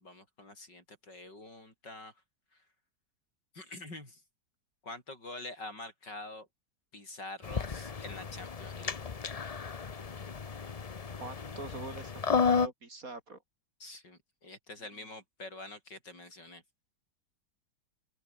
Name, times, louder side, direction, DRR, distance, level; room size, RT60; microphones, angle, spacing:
voice 1, 0.0-2.1 3.5-4.2 4.8-6.5 6.9-8.9 13.8-16.6, left 2 dB, 80° left, 8.5 m, -46 dB
sound 1, 7.4-12.7, left 5 dB, 40° left, 0.5 m, -33 dB
voice 2, 11.2-13.4, right 3 dB, 50° right, 3.8 m, -44 dB
open air
omnidirectional pair, 1.9 m